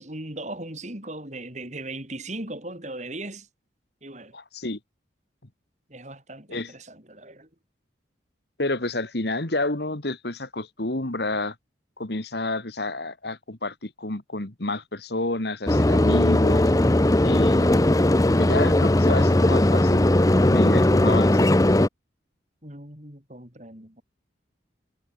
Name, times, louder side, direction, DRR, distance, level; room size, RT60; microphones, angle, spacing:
voice 1, 0.0-3.5 4.0-4.4 5.9-7.5 22.6-24.0, right 2 dB, 40° right, 5.5 m, -38 dB
voice 2, 4.3-4.8 6.5-6.7 8.6-11.6 12.0-16.7 17.2-17.8 18.3-20.1 20.4-21.5, left 2 dB, 60° left, 1.9 m, -29 dB
sound 1, 15.7-21.9, left 1 dB, 20° left, 0.6 m, -18 dB
head